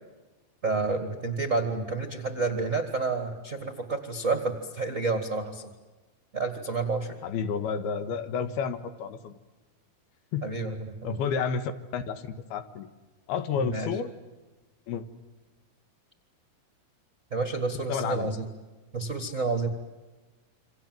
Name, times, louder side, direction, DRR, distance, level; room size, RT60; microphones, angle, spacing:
voice 1, 0.6-5.7 6.3-7.1 10.4-11.2 13.5-13.9 17.3-18.5 18.9-19.7, right 3 dB, 35° right, 6 dB, 1.2 m, -29 dB
voice 2, 7.2-9.3 10.3-10.5 11.0-12.9 13.3-14.1 14.9-15.0 17.9-18.3, left 6 dB, 75° left, 9 dB, 3.2 m, -31 dB
28.0 x 25.5 x 7.7 m, 1.2 s
omnidirectional pair, 4.6 m